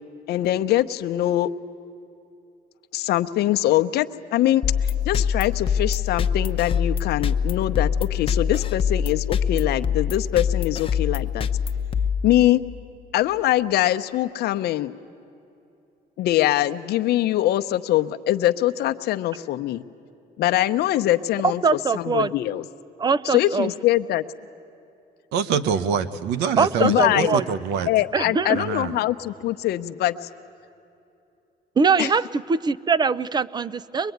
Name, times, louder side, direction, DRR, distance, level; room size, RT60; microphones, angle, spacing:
voice 1, 0.3-1.5 2.9-4.6 5.0-11.5 12.2-12.6 13.1-14.9 16.2-19.8 20.4-21.6 21.9-22.6 23.2-24.2 26.8-27.4 27.9-30.3 32.0-32.1, left 14 dB, 75° left, 8 dB, 0.8 m, -23 dB
sound 1, 4.6-12.8, left 7 dB, 35° left, 0.9 m, -24 dB
voice 2, 21.6-22.3 23.0-23.7 26.6-27.5 28.1-28.6 31.8-34.1, right 5 dB, 25° right, 19 dB, 0.5 m, -22 dB
voice 3, 25.3-27.9 28.5-29.0, right 7 dB, 90° right, 15 dB, 1.0 m, -25 dB
23.5 x 22.0 x 9.4 m, 2.7 s
cardioid pair, 110°, 17 cm